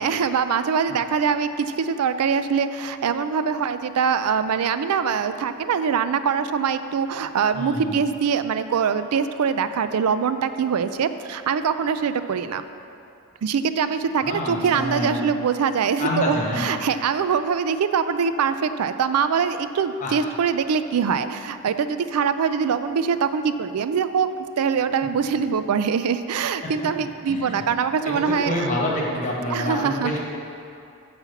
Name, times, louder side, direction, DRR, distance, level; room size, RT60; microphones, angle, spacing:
voice 1, 0.0-12.6 13.4-24.3 24.6-28.7 29.5-30.1, right 6 dB, 85° right, 11 dB, 0.4 m, -23 dB
voice 2, 7.5-7.9 14.2-15.2 16.0-16.6 20.0-20.2 26.6-26.7 27.3-27.6 28.1-30.2, left 1 dB, 35° left, -2 dB, 1.2 m, -27 dB
9.6 x 4.3 x 7.0 m, 2.7 s
head